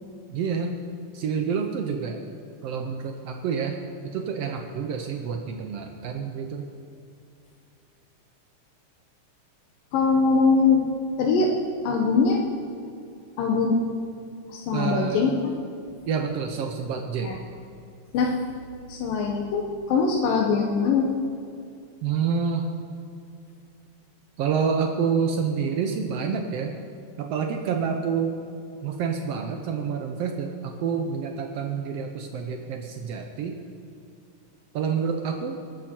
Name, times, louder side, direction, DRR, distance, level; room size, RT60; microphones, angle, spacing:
voice 1, 0.3-0.8 1.1-2.2 2.6-6.7 14.7-15.3 16.1-17.3 22.0-22.6 24.4-26.7 27.2-28.4 28.8-33.6 34.7-35.6, right 6 dB, 80° right, 4 dB, 1.4 m, -28 dB
voice 2, 9.9-10.8 11.2-11.5 11.8-12.4 13.4-13.8 14.5-15.5 17.2-17.4 18.1-18.4 18.9-21.1, left 4 dB, 85° left, 0 dB, 2.8 m, -22 dB
21.0 x 11.5 x 4.5 m, 2.5 s
omnidirectional pair, 3.9 m